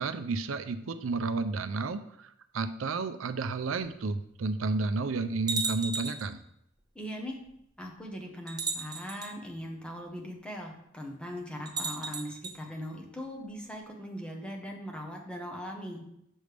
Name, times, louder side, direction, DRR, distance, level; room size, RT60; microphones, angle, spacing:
voice 1, 0.0-6.4, right 3 dB, 85° right, 10 dB, 0.5 m, -32 dB
sound 1, 3.8-3.9 4.7-4.8 5.5-6.3 7.5-7.6 8.5-9.3 11.7-12.6, right 4 dB, 20° right, 0.8 m, -35 dB
voice 2, 6.9-7.4 7.8-16.0, equal, 5° left, 0 dB, 1.1 m, -40 dB
6.5 x 6.3 x 3.4 m, 0.77 s
head